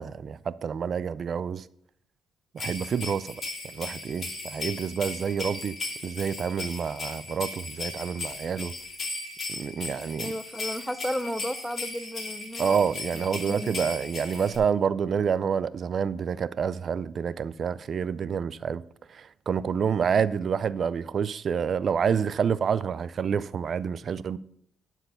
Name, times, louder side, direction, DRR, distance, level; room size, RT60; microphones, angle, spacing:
voice 1, 0.0-1.6 2.5-3.4 3.6-5.8 6.0-8.7 9.5-10.3 12.6-18.8 19.1-24.4, right 7 dB, 50° right, 0.4 m, -28 dB
sound 1, 2.6-14.6, left 3 dB, 45° left, 2.7 m, -37 dB
voice 2, 10.1-12.8 13.4-13.7, equal, ahead, 0.7 m, -33 dB
11.5 x 4.6 x 7.0 m
cardioid pair, 90°, 0 cm